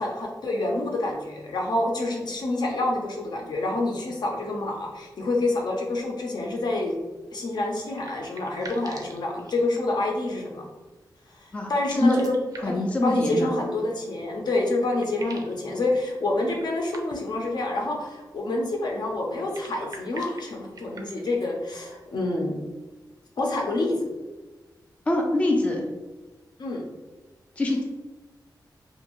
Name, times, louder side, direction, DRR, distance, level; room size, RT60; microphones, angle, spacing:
voice 1, 0.0-6.9 7.3-10.7 11.4-12.4 12.6-22.5 23.4-24.0 26.6-26.8, left 2 dB, 65° left, 0 dB, 0.6 m, -27 dB
sound 1, 7.8-10.1 11.7-13.0 14.3-14.4 14.6-15.6 16.4-17.4 19.3-21.5, right 3 dB, 55° right, 0.4 m, -46 dB
voice 2, 11.5-12.2 12.6-13.5 25.1-25.9 27.6-27.8, left 2 dB, 15° left, 0 dB, 0.3 m, -24 dB
2.6 x 2.5 x 2.9 m, 1.2 s
wide cardioid pair, 145°, 8 cm